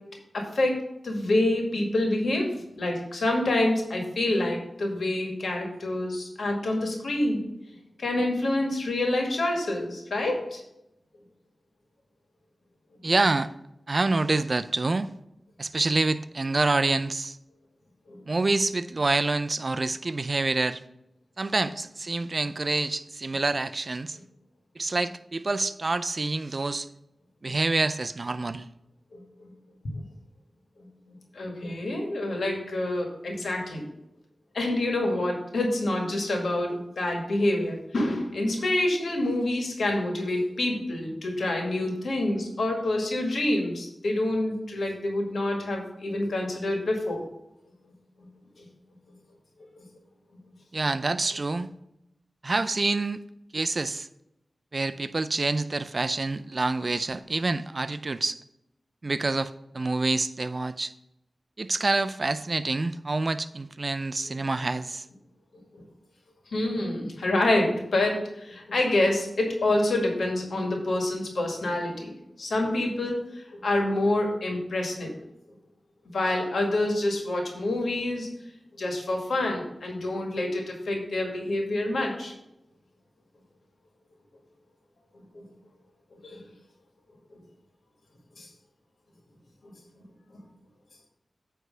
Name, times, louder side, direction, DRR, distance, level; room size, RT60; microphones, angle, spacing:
voice 1, 1.0-7.4 8.0-10.6 18.1-18.2 29.1-29.2 30.0-30.1 31.3-33.8 34.5-47.2 48.6-48.7 49.8-49.9 65.7-65.8 66.5-72.1 72.4-75.1 76.1-78.3 78.8-82.3 85.4-85.5 86.2-86.4 88.4-88.5 89.6-89.7, left 1 dB, 85° left, 2 dB, 1.9 m, -27 dB
voice 2, 13.0-13.5 13.9-15.1 15.6-17.4 18.3-20.8 21.4-24.2 24.8-26.9 27.4-28.7 50.7-51.7 52.4-53.2 53.5-54.1 54.7-58.4 59.0-60.9 61.6-65.0, right 3 dB, 50° right, 12 dB, 0.5 m, -27 dB
9.2 x 3.4 x 6.4 m, 0.83 s
wide cardioid pair, 60°, 0 cm